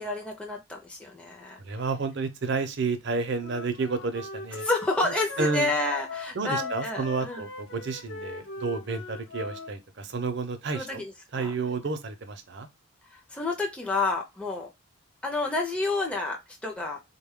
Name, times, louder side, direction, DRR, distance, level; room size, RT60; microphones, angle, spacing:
voice 1, 0.0-1.6 4.6-7.5 10.7-11.5 13.1-14.7 15.2-17.0, left 2 dB, 5° left, 0.5 m, -30 dB
voice 2, 1.6-4.6 5.0-5.7 6.3-11.0 11.3-12.7, right 4 dB, 55° right, 0.6 m, -31 dB
Wind instrument woodwind instrument, 3.4-9.7, left 3 dB, 65° left, 0.8 m, -40 dB
3.8 x 2.2 x 3.5 m
head